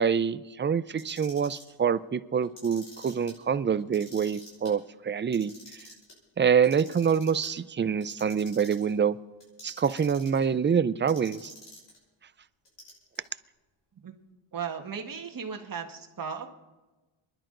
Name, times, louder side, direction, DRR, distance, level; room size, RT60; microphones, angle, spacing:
voice 1, 0.0-5.5 6.4-9.2 9.6-11.5, right 7 dB, 25° right, 15 dB, 0.4 m, -26 dB
Clock, 0.9-1.7 2.4-3.3 3.8-4.7 5.2-6.1 6.6-7.5 8.0-8.9 9.4-10.4 11.1-12.0 12.6-13.3, left 1 dB, 55° left, 6.2 m, -48 dB
voice 2, 14.5-16.5, right 6 dB, 40° right, 3 dB, 1.6 m, -36 dB
29.0 x 11.0 x 3.9 m, 1.2 s
cardioid pair, 110°, 50 cm